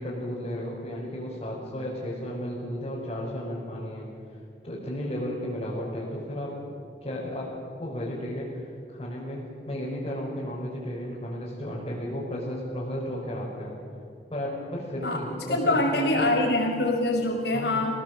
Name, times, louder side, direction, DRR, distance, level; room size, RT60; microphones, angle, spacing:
voice 1, 0.0-4.1 4.6-6.5 7.0-7.5 7.8-9.4 9.7-13.8 14.3-16.3 17.5-17.8, equal, 30° left, -7 dB, 5.3 m, -33 dB
voice 2, 15.5-18.0, left 2 dB, 70° left, 0 dB, 5.7 m, -24 dB
25.5 x 18.5 x 7.9 m, 2.4 s
head